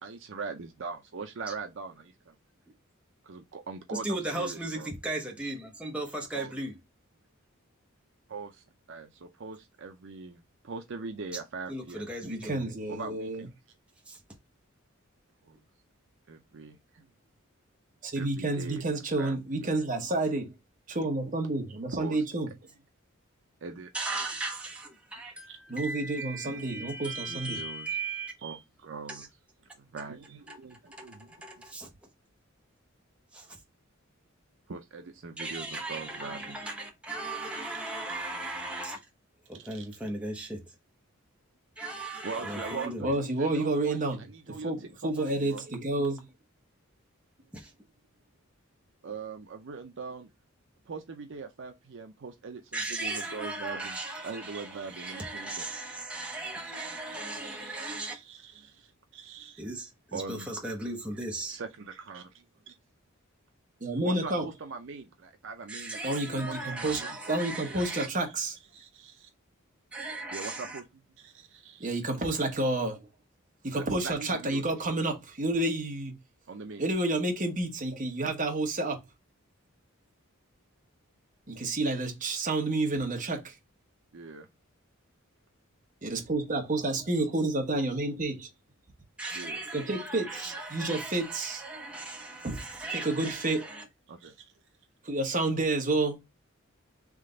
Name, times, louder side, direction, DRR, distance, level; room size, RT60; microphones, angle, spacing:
voice 1, 0.0-2.3 3.2-4.1 4.3-4.9 6.3-6.5 8.3-12.1 12.9-13.5 15.4-15.6 16.3-17.1 18.2-18.8 19.2-19.8 21.9-22.2 23.6-23.9 25.5-25.6 26.4-26.6 27.1-27.9 28.4-29.3 29.8-31.5 34.7-36.6 39.5-39.9 42.2-44.7 45.0-45.6 49.0-50.3 50.9-55.7 56.6-59.6 60.1-60.5 61.5-62.7 64.0-67.3 67.6-68.1 68.7-69.3 70.3-71.9 73.7-74.8 76.5-76.8 84.1-84.5 89.3-89.6 94.1-94.5, right 4 dB, 60° right, 0.5 m, -42 dB
voice 2, 3.9-6.8 11.7-12.6 14.1-14.2 23.9-28.3 29.1-29.3 30.5-31.9 33.3-33.6 35.4-39.0 39.5-40.6 41.8-43.0 47.5-47.7 52.7-58.2 59.6-61.6 65.7-68.1 69.9-70.8 89.2-93.8, right 2 dB, 5° right, 0.8 m, -37 dB
voice 3, 12.2-13.5 18.0-20.5 20.9-22.5 25.7-27.6 43.0-46.3 63.8-64.4 66.0-67.0 67.3-68.6 71.8-73.1 73.6-76.1 76.8-79.0 81.5-83.5 86.0-88.5 89.7-91.6 92.4-92.6 92.9-93.7 95.0-96.2, right 2 dB, 40° right, 1.2 m, -30 dB
3.6 x 3.2 x 3.8 m
head